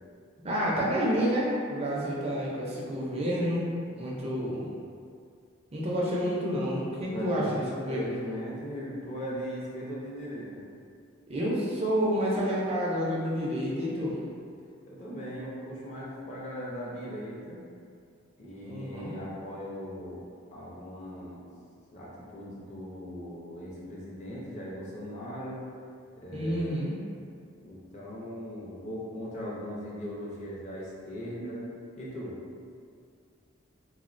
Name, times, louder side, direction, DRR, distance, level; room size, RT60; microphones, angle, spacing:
voice 1, 0.4-3.6 3.9-4.6 5.7-8.1 11.3-14.2 18.6-19.1 26.3-26.9 31.4-31.5, equal, 30° right, -5 dB, 0.4 m, -29 dB
voice 2, 7.0-7.5 7.9-10.6 14.9-17.6 18.4-20.2 20.5-21.4 21.9-25.6 26.2-26.8 27.6-31.6 32.0-32.4, equal, 35° left, -6 dB, 0.5 m, -39 dB
3.4 x 2.1 x 2.5 m, 2.2 s
head